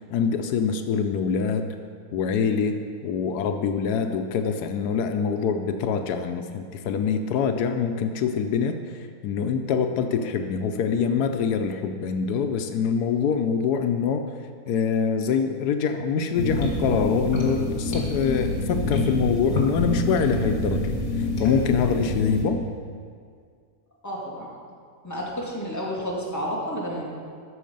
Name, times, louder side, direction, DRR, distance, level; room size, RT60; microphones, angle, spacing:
voice 1, 0.1-1.7 2.1-14.3 14.7-22.7, left 6 dB, 85° left, 7 dB, 1.2 m, -25 dB
sound 1, 16.3-22.4, left 2 dB, 60° left, 2.4 m, -27 dB
voice 2, 24.0-24.5 25.0-27.1, equal, 10° left, -5 dB, 2.0 m, -30 dB
13.0 x 6.5 x 5.3 m, 2.1 s
omnidirectional pair, 1.7 m